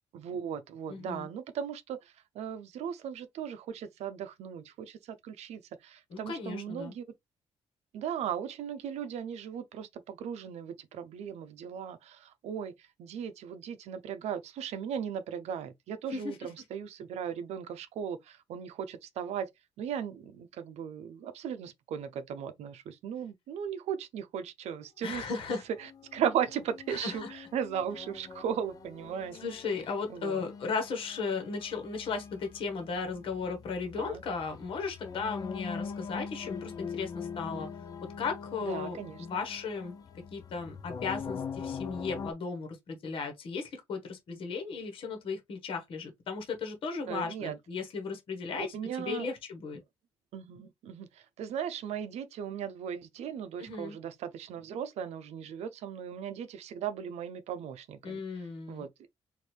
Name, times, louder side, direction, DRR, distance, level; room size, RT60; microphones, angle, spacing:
voice 1, 0.1-7.0 7.9-19.5 19.8-25.3 25.8-29.4 30.1-30.4 34.0-34.2 37.6-37.7 38.6-39.3 47.1-47.6 48.5-49.3 50.3-58.2 58.7-59.1, right 8 dB, 75° right, 0.6 m, -37 dB
voice 2, 0.9-1.3 6.1-6.9 16.1-16.5 25.0-25.6 26.9-27.3 29.4-37.7 38.2-39.9 40.3-49.8 53.6-54.0 58.0-58.8, left 5 dB, 50° left, 1.3 m, -36 dB
sound 1, 25.8-42.3, left 6 dB, 35° left, 0.5 m, -43 dB
4.4 x 2.7 x 3.2 m
cardioid pair, 180°, 11 cm